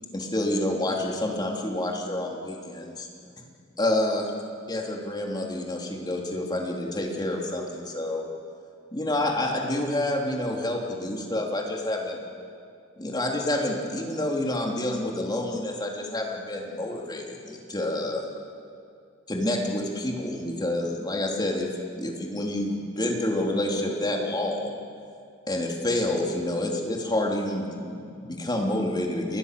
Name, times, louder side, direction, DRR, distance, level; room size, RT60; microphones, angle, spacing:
voice 1, 0.1-3.1 3.8-4.3 4.7-8.2 8.9-12.2 13.0-18.2 19.3-21.7 22.0-24.8 25.5-29.4, left 1 dB, 20° left, 0 dB, 3.4 m, -28 dB
30.0 x 20.5 x 6.8 m, 2.3 s
head